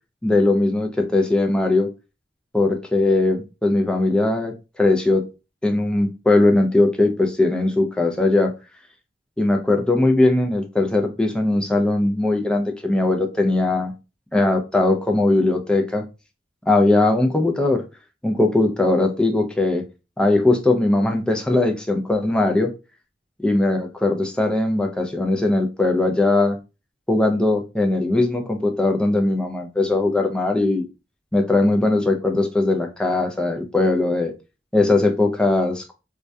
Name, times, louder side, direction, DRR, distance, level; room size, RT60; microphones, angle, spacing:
voice 1, 0.2-1.9 2.5-5.3 5.6-8.5 9.4-13.9 14.3-16.1 16.7-17.8 18.2-19.8 20.2-22.7 23.4-26.6 27.1-30.9 31.3-34.3 34.7-35.9, left 2 dB, 5° left, 0.3 m, -19 dB
2.3 x 2.1 x 2.5 m
head